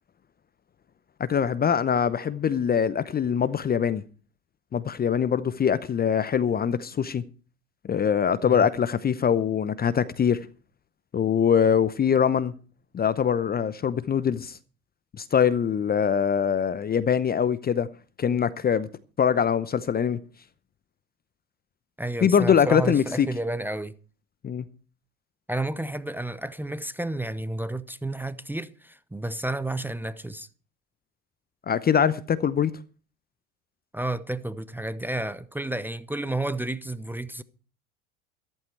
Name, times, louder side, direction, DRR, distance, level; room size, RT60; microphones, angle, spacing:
voice 1, 1.2-4.0 4.7-7.2 7.8-10.4 11.1-12.5 12.9-14.6 15.2-17.9 18.2-18.9 19.2-20.2 22.2-23.3 24.4-24.7 31.7-32.7, left 7 dB, 20° left, 0.8 m, -23 dB
voice 2, 22.0-23.9 25.5-30.5 33.9-37.4, right 1 dB, 5° right, 0.8 m, -31 dB
14.5 x 13.5 x 4.6 m
hypercardioid pair, 80°, 43 cm